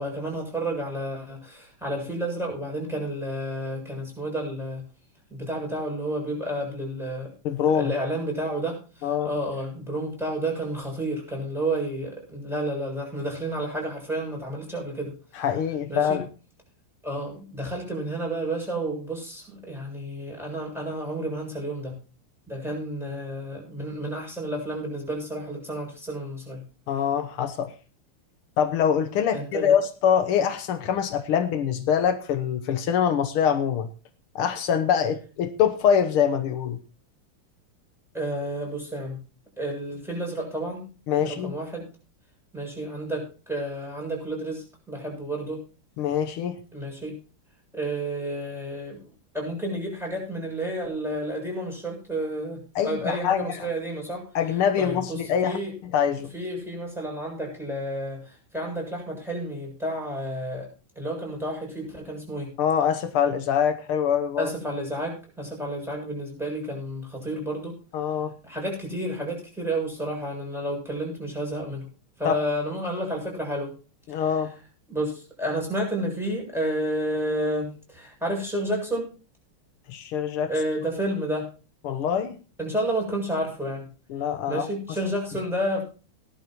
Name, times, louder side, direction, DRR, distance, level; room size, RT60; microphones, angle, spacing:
voice 1, 0.0-4.8 5.3-7.3 7.7-15.5 15.9-16.2 17.0-22.0 22.5-26.6 29.3-29.7 38.1-39.2 39.6-40.9 41.2-41.9 42.5-45.6 46.7-47.1 47.7-49.0 49.3-54.2 54.8-55.7 56.3-60.7 61.0-62.5 64.4-67.8 68.4-71.9 72.2-73.7 74.1-74.3 74.9-79.1 80.5-81.5 82.6-83.9 84.5-85.8, right 1 dB, ahead, -2 dB, 7.2 m, -31 dB
voice 2, 7.5-7.9 9.0-9.3 15.4-16.2 26.9-27.7 28.6-33.9 34.4-36.8 41.1-41.5 46.0-46.6 52.8-53.7 54.4-55.6 55.9-56.3 62.6-64.5 67.9-68.3 72.2-72.3 74.1-74.5 79.9-80.5 81.8-82.4 84.1-84.7, left 8 dB, 80° left, 9 dB, 1.9 m, -24 dB
18.5 x 11.5 x 3.0 m, 0.35 s
omnidirectional pair, 2.4 m